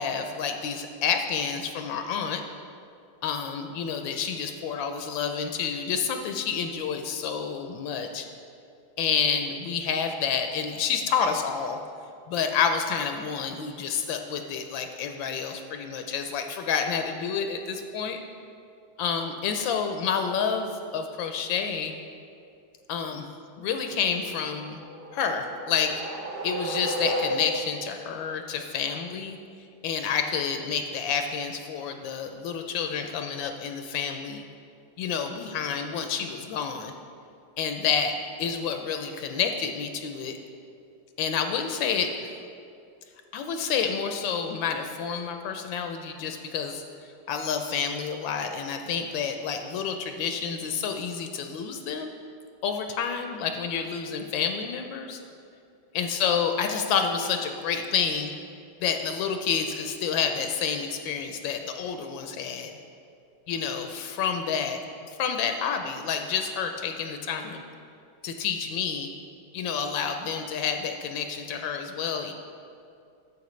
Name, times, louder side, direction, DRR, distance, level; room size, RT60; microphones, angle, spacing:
voice 1, 0.0-2.4 3.2-8.3 9.0-11.8 12.3-18.2 19.0-21.9 22.9-23.3 23.6-24.8 25.1-25.9 26.4-29.4 29.8-34.4 35.0-36.9 37.6-38.1 38.4-40.3 41.2-42.1 43.3-46.8 47.3-52.1 52.6-55.2 55.9-58.3 58.8-62.7 63.5-64.8 65.2-67.6 68.2-69.1 69.5-72.3, left 6 dB, 80° left, 5 dB, 1.3 m, -29 dB
sound 1, 24.6-27.8, equal, 45° right, 0.8 m, -32 dB
10.5 x 7.3 x 3.1 m, 2.5 s
omnidirectional pair, 2.1 m